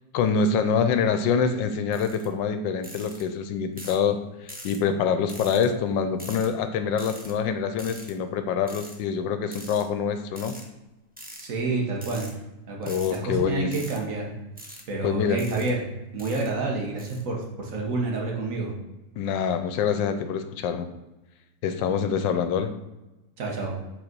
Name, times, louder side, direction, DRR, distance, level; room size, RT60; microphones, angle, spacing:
voice 1, 0.1-10.5 12.9-13.7 15.0-15.4 19.2-20.9 21.6-22.7, left 6 dB, 80° left, 8 dB, 1.3 m, -25 dB
sound 1, 1.9-2.3 2.8-3.2 3.8-4.0 4.5-4.8 5.3-5.7 6.2-6.5 7.0-7.3 7.8-8.1 8.7-9.0 9.5-9.8 10.4-10.7 11.2-11.5 12.0-12.3 12.8-13.2 13.7-14.0 14.6-14.8 15.4-15.7 16.2-16.5 17.0-17.2, equal, 15° right, 0.3 m, -43 dB
voice 2, 11.4-12.3 12.7-14.3 14.9-15.8 16.1-18.7 23.4-23.7, right 3 dB, 50° right, -1 dB, 1.7 m, -28 dB
7.6 x 4.1 x 4.6 m, 1.0 s
omnidirectional pair, 2.0 m